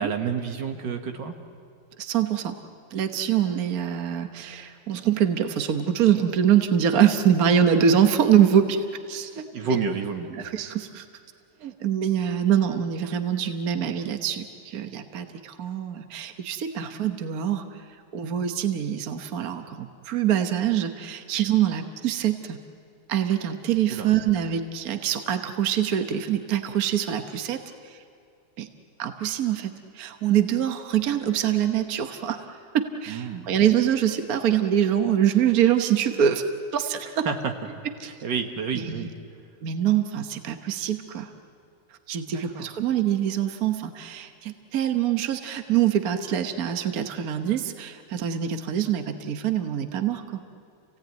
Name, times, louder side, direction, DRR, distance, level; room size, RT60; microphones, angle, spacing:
voice 1, 0.0-1.3 9.5-10.3 23.9-24.1 33.1-33.5 37.0-37.5 38.0-39.1 42.3-42.7, right 6 dB, 90° right, 5 dB, 2.1 m, -29 dB
voice 2, 2.0-2.6 2.9-9.5 10.3-11.0 11.6-17.8 18.1-22.6 23.1-28.0 28.6-28.7 29.0-32.4 32.7-36.4 36.7-37.3 38.0-38.1 38.7-39.1 39.6-41.3 42.1-50.4, right 9 dB, 60° right, 7 dB, 1.5 m, -24 dB
28.5 x 17.0 x 9.3 m, 2.3 s
omnidirectional pair, 1.9 m